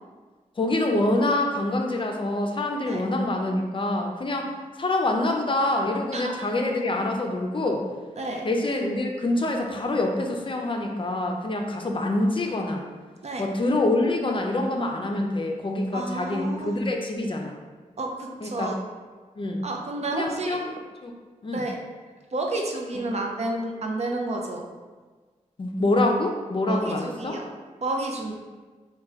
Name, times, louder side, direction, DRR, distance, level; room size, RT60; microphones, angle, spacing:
voice 1, 0.6-4.5 4.8-7.9 8.4-12.8 13.4-17.6 18.4-18.7 19.4-19.7 20.1-20.7 21.0-21.1 21.4-21.7 25.6-27.4, left 2 dB, 40° left, 2 dB, 0.5 m, -26 dB
voice 2, 15.9-16.8 18.0-18.8 19.6-20.7 21.5-21.8 22.3-24.6 26.7-27.5 27.8-28.3, right 2 dB, 50° right, 1 dB, 0.5 m, -30 dB
3.1 x 2.2 x 3.5 m, 1.4 s
cardioid pair, 50°, 14 cm